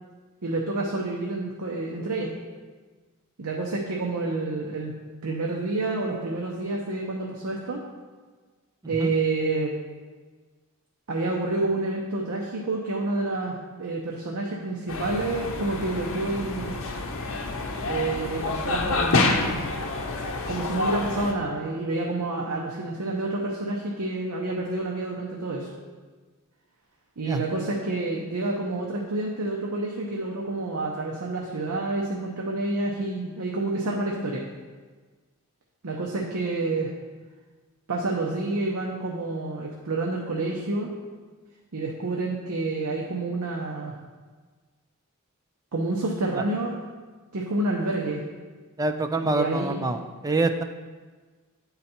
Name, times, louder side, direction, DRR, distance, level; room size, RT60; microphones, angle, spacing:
voice 1, 0.4-2.3 3.4-4.9 5.2-7.8 8.9-9.7 11.1-16.8 17.8-19.6 20.5-25.7 27.2-34.4 35.8-36.9 37.9-40.9 41.7-43.9 45.7-46.8 47.3-48.2 49.2-49.8, right 2 dB, 85° right, -1 dB, 0.7 m, -28 dB
sound 1, 14.9-21.3, left 3 dB, 65° left, 0.8 m, -28 dB
voice 2, 48.8-50.0 50.2-50.6, right 2 dB, 15° right, 6 dB, 0.4 m, -25 dB
8.8 x 4.0 x 4.2 m, 1.4 s
head